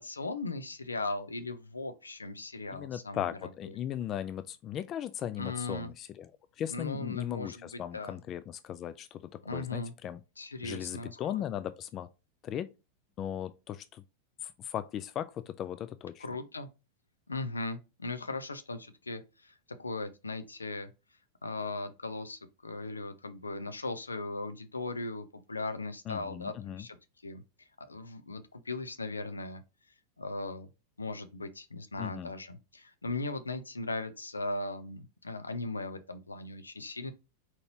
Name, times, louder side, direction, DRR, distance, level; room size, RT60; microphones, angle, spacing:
voice 1, 0.0-3.3 3.7-3.8 5.4-5.9 6.7-8.2 9.4-9.9 10.4-11.3 16.2-16.7 17.3-20.9 21.4-27.0 27.2-29.6 30.2-30.7 31.0-37.1, left 2 dB, 80° left, 0.6 m, -38 dB
voice 2, 2.7-6.3 6.6-10.2 10.6-12.1 12.4-12.7 13.2-14.0 14.4-16.3 26.1-26.9 32.0-32.3, left 10 dB, 30° left, 0.3 m, -37 dB
4.3 x 3.9 x 2.8 m
figure-of-eight pair, 90°, 0 cm